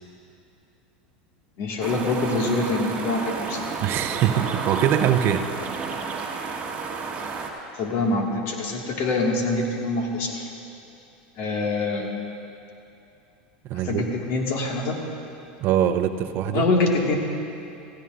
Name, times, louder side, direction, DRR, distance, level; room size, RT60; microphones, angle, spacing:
voice 1, 1.6-3.6 7.7-10.5 11.4-12.1 13.8-14.9 16.5-17.2, left 2 dB, 55° left, 0 dB, 1.9 m, -25 dB
sound 1, 1.8-7.5, right 5 dB, 30° right, 1.4 m, -31 dB
voice 2, 3.8-5.5 13.6-14.1 15.6-16.7, right 10 dB, 50° right, 8 dB, 0.6 m, -23 dB
16.5 x 15.0 x 2.5 m, 2.7 s
supercardioid pair, 110°, 5 cm